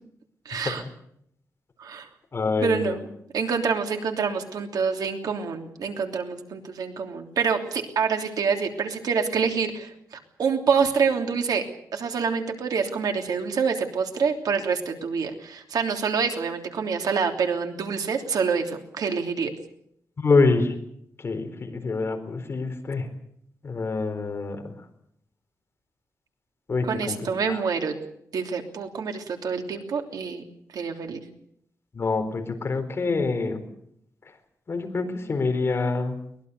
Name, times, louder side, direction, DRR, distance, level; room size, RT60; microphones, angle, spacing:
voice 1, 0.4-0.8 1.8-2.1 2.6-3.1 3.3-11.6 11.9-19.5 26.8-27.9 28.3-30.4 30.7-31.2, right 5 dB, 85° right, 4 dB, 3.1 m, -26 dB
voice 2, 2.3-3.0 20.2-20.7 21.2-23.1 23.6-24.7 26.7-27.6 31.9-33.6 34.7-36.2, left 3 dB, 40° left, 5 dB, 4.2 m, -26 dB
23.0 x 20.5 x 6.9 m, 0.71 s
wide cardioid pair, 140°, 6 cm